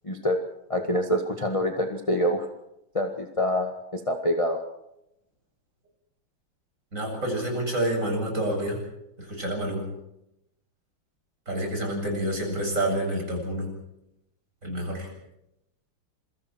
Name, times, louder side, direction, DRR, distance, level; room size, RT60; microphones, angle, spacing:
voice 1, 0.0-0.4 0.7-2.5 2.9-4.6, equal, 15° left, 3 dB, 1.6 m, -26 dB
voice 2, 6.9-8.8 9.2-9.8 11.5-13.7 14.6-15.1, right 1 dB, 40° right, 1 dB, 8.1 m, -28 dB
27.5 x 24.0 x 4.5 m, 0.84 s
omnidirectional pair, 2.2 m